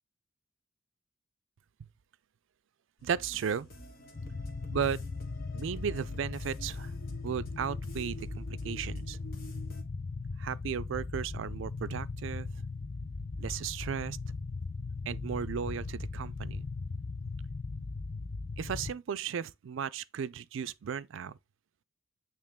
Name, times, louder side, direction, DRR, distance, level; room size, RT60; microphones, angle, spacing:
sound 1, 3.0-9.8, right 1 dB, 45° left, 1.4 m, -49 dB
voice 1, 3.0-3.7 4.7-5.0 5.5-6.9 7.2-9.2 10.4-12.5 13.4-14.2 15.1-16.7 18.6-21.4, right 7 dB, 70° right, 0.4 m, -35 dB
sound 2, 4.1-18.9, left 3 dB, 30° left, 0.3 m, -38 dB
8.7 x 3.0 x 3.5 m
head